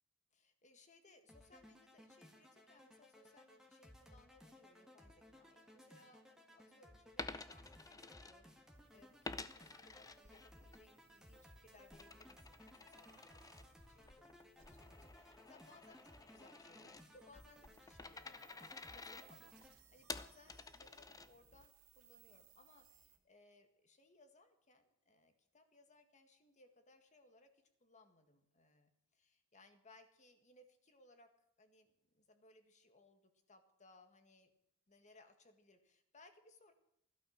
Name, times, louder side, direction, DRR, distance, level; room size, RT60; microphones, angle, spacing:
voice 1, 0.3-31.3 31.6-34.5 34.9-36.7, left 2 dB, 35° left, 7 dB, 1.8 m, -66 dB
sound 1, 1.3-19.8, left 1 dB, 5° right, 1.8 m, -62 dB
Coin (dropping), 7.2-8.8 9.2-10.8 11.2-21.7, left 3 dB, 15° left, 0.7 m, -51 dB
sound 2, 8.7-23.2, right 10 dB, 90° right, 2.2 m, -70 dB
16.0 x 12.0 x 6.5 m, 0.76 s
head